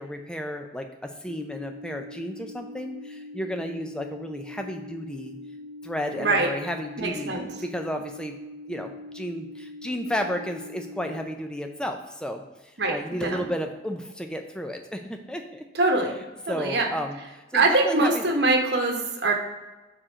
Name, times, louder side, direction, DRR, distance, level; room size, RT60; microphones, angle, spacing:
voice 1, 0.0-5.3 5.8-8.3 8.7-15.6 16.5-18.2, equal, 5° left, 4 dB, 0.5 m, -33 dB
sound 1, 1.3-11.3, left 2 dB, 85° right, 0.6 m, -42 dB
voice 2, 7.0-7.5 12.8-13.0 13.2-13.5 15.7-16.1 16.5-16.9 17.5-19.3, right 2 dB, 70° right, 1 dB, 1.0 m, -23 dB
4.8 x 4.4 x 4.9 m, 1.2 s
head